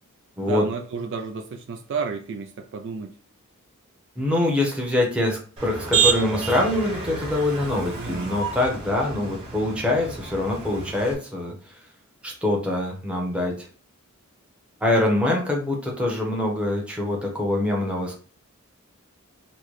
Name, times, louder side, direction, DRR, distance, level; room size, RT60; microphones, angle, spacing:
voice 1, 0.4-3.1 7.9-8.3, right 5 dB, 55° right, 4 dB, 0.4 m, -31 dB
voice 2, 4.2-11.5 12.2-13.7 14.8-18.2, left 1 dB, 5° right, -1 dB, 0.8 m, -24 dB
Motor vehicle (road), 5.6-11.1, right 6 dB, 25° right, 1.4 m, -29 dB
3.9 x 2.2 x 3.1 m, 0.40 s
head